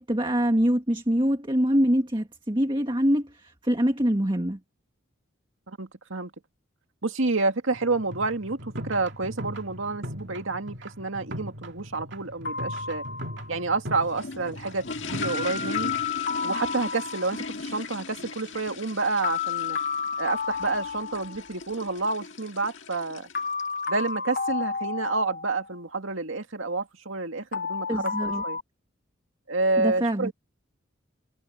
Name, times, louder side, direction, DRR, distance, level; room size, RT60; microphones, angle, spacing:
voice 1, 0.0-4.6 27.9-28.4 29.8-30.3, equal, 25° right, 1.8 m, -24 dB
voice 2, 5.7-6.3 7.0-13.0 13.5-15.9 16.4-19.8 20.2-23.3 23.9-28.6 29.5-30.3, right 3 dB, 75° right, 2.2 m, -29 dB
sound 1, 7.7-16.1, equal, 55° right, 2.8 m, -40 dB
sound 2, 12.5-13.6 15.2-17.5 19.2-21.6 23.4-25.7 27.5-28.6, left 5 dB, 40° left, 0.8 m, -31 dB
sound 3, 13.8-24.1, left 4 dB, 65° left, 1.8 m, -38 dB
head